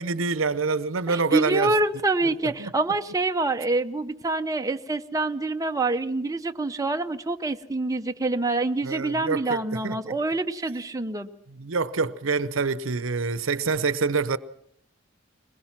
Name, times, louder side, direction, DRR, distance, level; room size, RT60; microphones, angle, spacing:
voice 1, 0.0-1.7 2.6-2.7 8.8-10.2 11.6-14.4, right 4 dB, 90° right, 0.8 m, -26 dB
voice 2, 1.1-11.3, right 2 dB, 15° right, 0.7 m, -26 dB
21.0 x 21.0 x 6.0 m
head